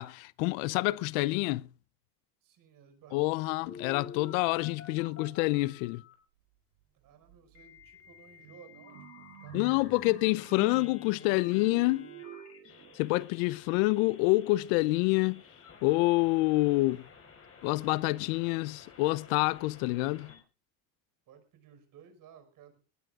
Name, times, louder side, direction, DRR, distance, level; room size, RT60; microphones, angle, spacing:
voice 1, 0.0-1.7 3.1-6.0 9.5-12.1 12.9-15.4 15.8-17.0 17.6-20.3, left 21 dB, 80° left, 0.8 m, -27 dB
voice 2, 2.4-3.7 6.9-10.0 10.2-10.4 17.8-18.9 21.3-22.9, right 7 dB, 50° right, 5.3 m, -57 dB
Telephone, 3.7-6.1 7.6-20.4, left 5 dB, 35° left, 5.5 m, -52 dB
sound 1, 6.8-6.9 7.3-13.4, right 9 dB, 85° right, 4.9 m, -49 dB
22.5 x 19.5 x 2.5 m
supercardioid pair, 115°, 41 cm